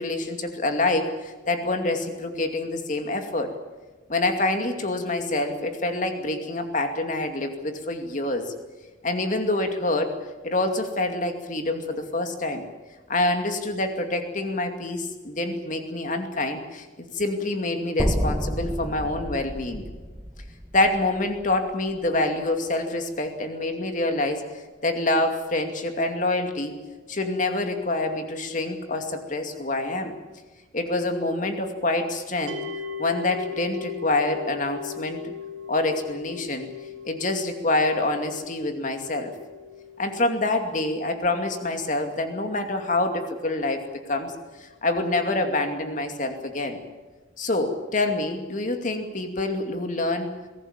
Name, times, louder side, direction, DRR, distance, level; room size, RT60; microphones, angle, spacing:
voice 1, 0.0-3.5 4.1-8.5 9.0-10.1 10.4-12.6 13.1-19.8 20.7-24.4 24.8-26.7 27.1-30.2 30.7-32.6 33.0-35.3 35.7-36.7 37.0-39.3 40.0-43.8 44.1-44.3 44.6-46.8 47.4-50.3, left 2 dB, 40° left, 5 dB, 2.5 m, -26 dB
sound 1, 18.0-22.2, equal, 10° right, 1.6 m, -30 dB
sound 2, 32.5-43.6, left 6 dB, 85° right, 2.5 m, -40 dB
22.5 x 17.5 x 8.7 m, 1.3 s
head